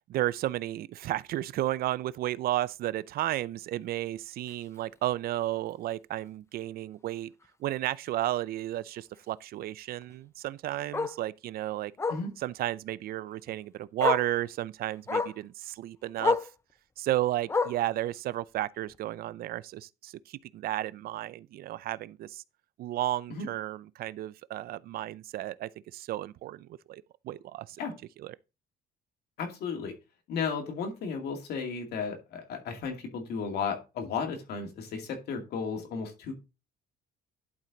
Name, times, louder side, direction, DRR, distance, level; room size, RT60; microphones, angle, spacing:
voice 1, 0.1-7.3 7.6-11.9 12.4-16.5 17.0-22.4 22.8-27.8 28.2-28.3, right 14 dB, 65° right, 0.5 m, -33 dB
Bark, 4.5-4.6 5.0-5.2 5.5-5.6 5.9-6.0 7.4-7.5 10.0-10.1 10.9-11.2 12.0-12.3 13.5-13.6 14.0-14.3 15.1-15.4 16.2-16.5 17.5-17.9 18.9-19.0, left 4 dB, 15° left, 0.5 m, -29 dB
voice 2, 29.4-29.9 30.3-36.3, left 5 dB, 70° left, 2.4 m, -34 dB
11.0 x 4.4 x 3.9 m
cardioid pair, 110°, 17 cm